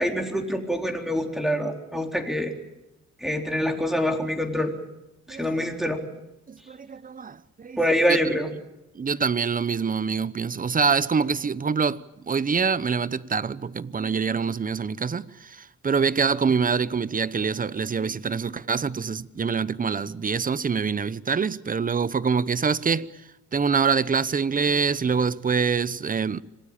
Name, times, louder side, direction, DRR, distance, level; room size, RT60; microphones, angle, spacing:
voice 1, 0.0-2.5 3.2-4.7 5.3-6.0 7.8-8.5, equal, ahead, 4.0 m, -25 dB
voice 2, 5.3-5.7 6.5-7.8 8.1-8.2 8.9-12.0 12.2-23.1 23.5-26.4, right 5 dB, 30° right, 0.9 m, -25 dB
26.5 x 18.5 x 8.9 m
cardioid pair, 90°, 30 cm